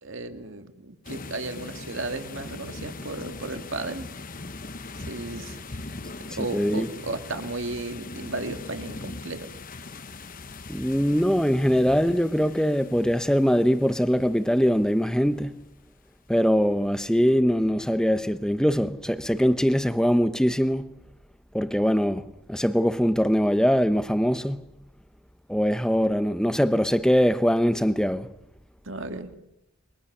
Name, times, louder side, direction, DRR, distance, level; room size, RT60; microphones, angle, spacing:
voice 1, 0.0-4.1 5.1-5.9 6.3-9.5 28.9-29.3, right 2 dB, 60° right, 2.1 m, -34 dB
sound 1, 1.0-15.6, left 3 dB, 40° left, 1.0 m, -41 dB
voice 2, 6.5-6.9 10.7-15.5 16.3-20.9 21.5-22.2 22.5-24.6 25.5-28.3, equal, 5° left, 1.0 m, -22 dB
28.0 x 24.0 x 6.8 m
head